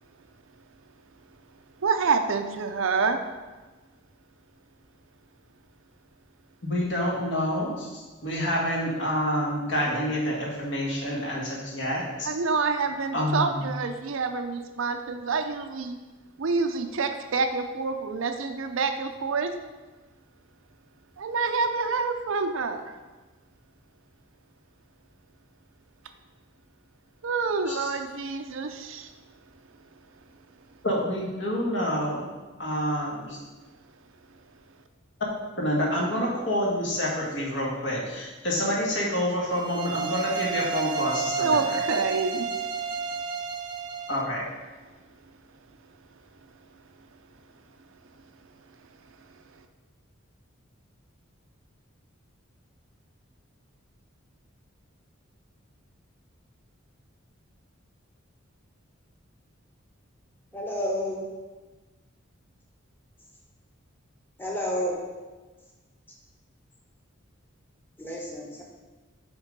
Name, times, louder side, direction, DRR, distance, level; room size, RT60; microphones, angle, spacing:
voice 1, 1.8-3.2 12.3-16.0 16.4-19.5 21.2-22.8 27.2-29.1 41.4-42.5, right 4 dB, 70° right, 7 dB, 0.5 m, -27 dB
voice 2, 6.6-12.3 13.1-13.7 27.7-27.9 30.8-32.3 32.6-33.4 35.6-41.8 44.1-44.4, equal, 60° left, -3 dB, 1.6 m, -28 dB
sound 1, 39.5-44.3, right 5 dB, 20° right, 0.3 m, -31 dB
voice 3, 60.5-61.2 64.4-65.0 68.0-68.6, equal, 10° left, -3 dB, 1.1 m, -30 dB
7.2 x 3.6 x 5.2 m, 1.2 s
head